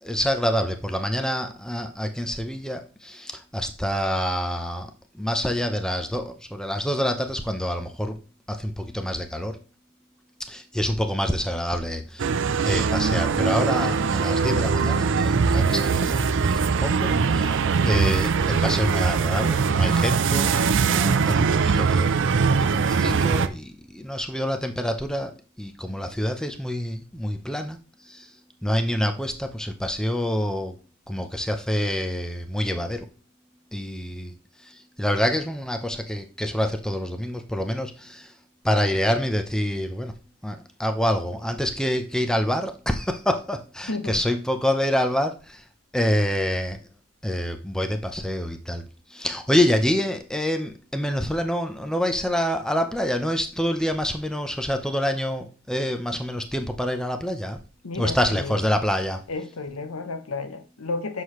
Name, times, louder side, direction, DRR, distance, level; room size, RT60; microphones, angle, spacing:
voice 1, 0.0-8.2 8.5-9.6 10.5-12.3 12.7-20.5 20.8-22.2 22.6-25.3 25.6-27.8 28.1-28.3 28.6-30.8 31.1-33.0 33.7-34.4 34.6-38.3 38.6-40.2 40.4-45.6 45.9-46.8 47.2-48.8 49.1-57.6 58.0-59.2, equal, 5° left, 0.6 m, -27 dB
sound 1, 12.2-23.5, right 5 dB, 60° right, 0.5 m, -22 dB
voice 2, 43.9-44.3 57.8-58.7 59.3-61.2, left 3 dB, 85° left, 0.9 m, -32 dB
7.5 x 6.5 x 3.1 m
head